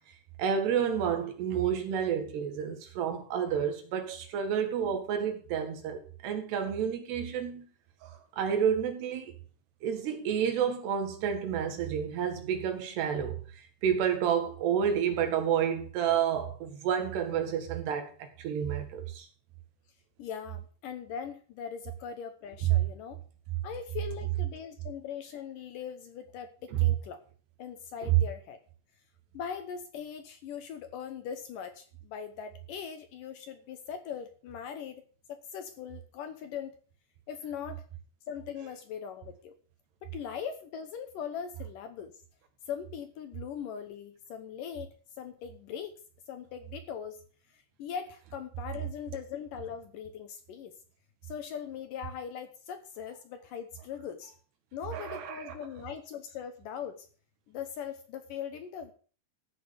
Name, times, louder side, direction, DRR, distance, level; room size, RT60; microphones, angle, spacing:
voice 1, 0.4-7.7 8.0-9.3 9.8-13.3 13.8-19.3 26.7-26.8 28.0-28.1 54.9-55.5, right 8 dB, 85° right, 4.1 m, -30 dB
voice 2, 20.2-23.2 23.6-27.2 27.6-28.6 29.3-36.8 37.3-37.8 38.3-39.5 40.0-42.2 42.7-46.0 46.3-47.2 47.5-50.7 51.2-54.3 54.7-57.1 57.5-58.9, left 8 dB, 70° left, 2.3 m, -40 dB
14.0 x 6.6 x 6.6 m
omnidirectional pair, 4.6 m